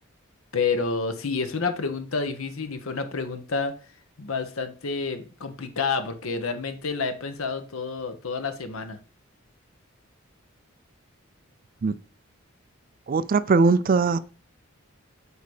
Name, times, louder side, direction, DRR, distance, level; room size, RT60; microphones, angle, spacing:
voice 1, 0.5-3.7 4.2-9.0, left 4 dB, 80° left, 0.9 m, -29 dB
voice 2, 13.1-14.2, right 4 dB, 40° right, 0.3 m, -20 dB
8.0 x 2.8 x 4.8 m
head